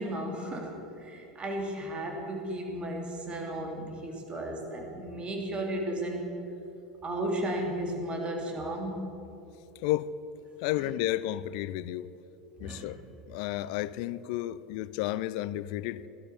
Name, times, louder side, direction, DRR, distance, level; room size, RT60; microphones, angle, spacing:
voice 1, 0.0-6.3 7.0-9.1 10.8-10.9 12.6-12.9, right 1 dB, 25° right, 3.0 m, -34 dB
voice 2, 9.8-10.1 10.6-12.1 12.6-13.0 13.3-16.1, left 14 dB, 55° left, 0.5 m, -32 dB
16.0 x 12.0 x 7.1 m
hypercardioid pair, 85°, 4 cm